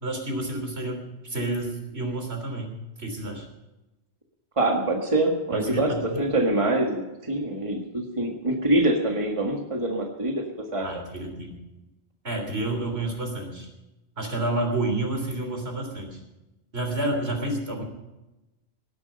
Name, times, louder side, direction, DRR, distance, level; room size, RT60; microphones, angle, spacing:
voice 1, 0.0-3.5 5.5-6.2 10.8-11.6 12.2-13.7 14.2-16.2 16.7-17.8, right 2 dB, 70° right, 3 dB, 3.5 m, -30 dB
voice 2, 4.6-10.4 10.7-10.9, right 1 dB, 30° right, 1 dB, 1.8 m, -25 dB
18.5 x 11.0 x 5.3 m, 1.0 s
omnidirectional pair, 1.1 m